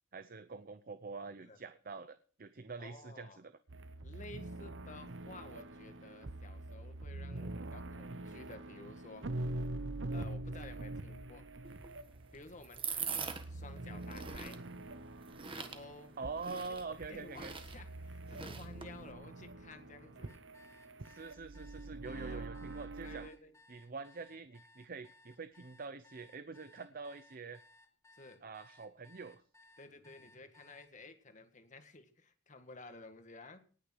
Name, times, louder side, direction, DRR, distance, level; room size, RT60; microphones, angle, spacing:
voice 1, 0.1-3.5 7.4-7.7 10.5-10.6 16.2-17.5 21.0-23.3 23.7-27.6 28.4-29.4, right 4 dB, 50° right, 11 dB, 0.7 m, -45 dB
voice 2, 2.8-3.4 4.0-9.3 10.1-11.5 12.3-14.6 15.5-16.1 16.7-20.3 22.1-22.5 23.0-23.5 28.1-28.4 29.8-33.6, left 3 dB, 40° left, 8 dB, 1.7 m, -53 dB
sound 1, 3.7-23.3, right 2 dB, 85° right, 0.9 m, -45 dB
sound 2, 11.6-19.1, right 6 dB, 30° right, 1.3 m, -44 dB
sound 3, 20.3-30.9, left 2 dB, 15° left, 2.8 m, -63 dB
19.0 x 6.6 x 6.3 m, 0.43 s
head